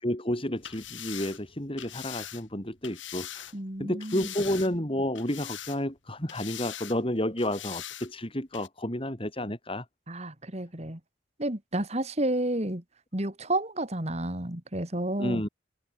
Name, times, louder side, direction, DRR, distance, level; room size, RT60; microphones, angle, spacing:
voice 1, 0.0-3.5 3.8-9.9 15.2-15.5, left 1 dB, 30° left, 3.6 m, -31 dB
sound 1, 0.6-3.6 4.0-4.9 5.2-6.0 6.3-7.0 7.4-8.1 8.5-8.7, left 12 dB, 85° left, 5.9 m, -42 dB
voice 2, 3.5-4.3 10.1-11.0 11.4-12.8 13.1-15.4, right 1 dB, 35° right, 2.9 m, -31 dB
head